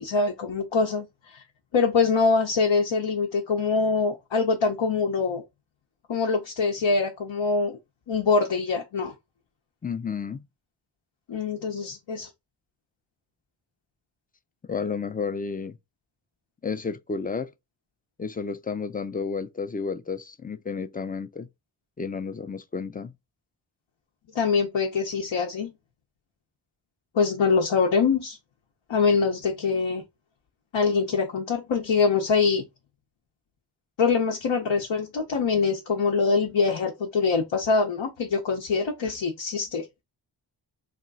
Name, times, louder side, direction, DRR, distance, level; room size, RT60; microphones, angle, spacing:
voice 1, 0.0-1.4 1.7-5.4 6.1-7.8 8.1-9.1 11.3-12.3 24.3-25.7 27.1-28.4 28.9-30.0 30.7-32.6 34.0-39.9, left 4 dB, 75° left, 0.7 m, -24 dB
voice 2, 9.8-10.4 14.7-15.8 16.6-17.5 18.2-21.5 22.0-23.1, left 5 dB, 20° left, 0.3 m, -31 dB
2.9 x 2.3 x 3.9 m
cardioid pair, 40°, 47 cm